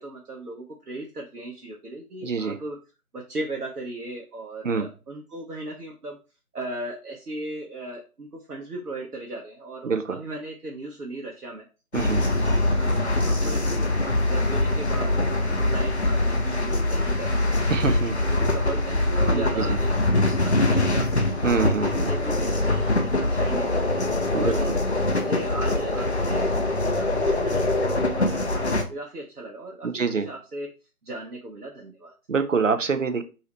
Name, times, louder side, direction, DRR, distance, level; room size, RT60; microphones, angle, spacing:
voice 1, 0.0-2.8 3.1-6.2 6.5-11.7 12.3-13.9 14.2-18.0 18.3-21.3 21.7-24.7 25.1-26.6 26.9-30.7 31.0-32.1, right 2 dB, 80° right, -1 dB, 0.8 m, -37 dB
voice 2, 2.2-2.6 4.6-4.9 9.8-10.2 11.9-12.2 17.7-18.1 19.3-19.8 21.4-22.1 24.3-24.8 29.8-30.3 32.3-33.2, right 5 dB, 60° right, 9 dB, 0.5 m, -25 dB
sound 1, 11.9-28.8, left 2 dB, 50° left, 0.5 m, -23 dB
3.0 x 2.7 x 3.0 m, 0.33 s
figure-of-eight pair, 160°, 45 cm